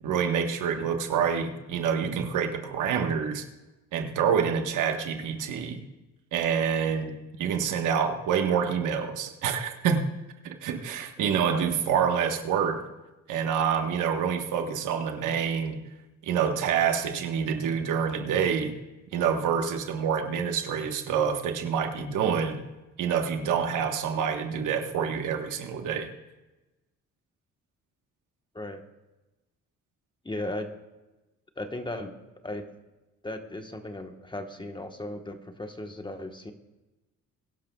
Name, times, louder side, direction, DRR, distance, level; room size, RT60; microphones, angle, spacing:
voice 1, 0.0-3.5 3.9-5.8 6.3-10.1 10.4-12.9 13.3-15.8 16.2-18.7 19.1-22.6 23.0-26.1, right 7 dB, 85° right, 5 dB, 1.3 m, -27 dB
voice 2, 30.2-30.7 31.6-32.2 32.4-32.7 33.2-36.5, left 1 dB, 15° left, 5 dB, 1.2 m, -36 dB
22.0 x 12.0 x 2.3 m, 1.1 s
cardioid pair, 90°, 30 cm